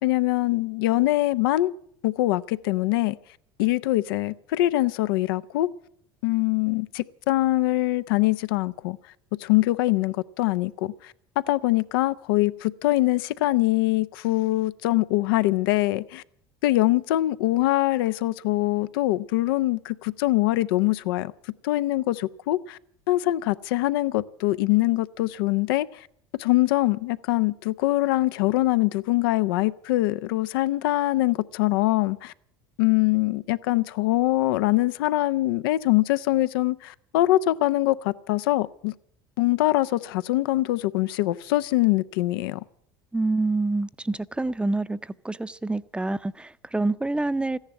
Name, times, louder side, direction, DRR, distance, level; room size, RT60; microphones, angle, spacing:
voice 1, 0.0-1.7 2.0-3.2 3.6-5.7 6.2-9.0 9.4-10.9 11.5-16.2 16.6-21.3 21.6-22.8 23.1-25.9 26.4-32.3 32.8-38.9 39.4-42.6, left 17 dB, 75° left, 0.6 m, -23 dB
voice 2, 43.1-45.0 45.2-47.6, right 2 dB, 10° right, 0.6 m, -27 dB
14.5 x 10.5 x 9.4 m
hypercardioid pair, 75°, 12 cm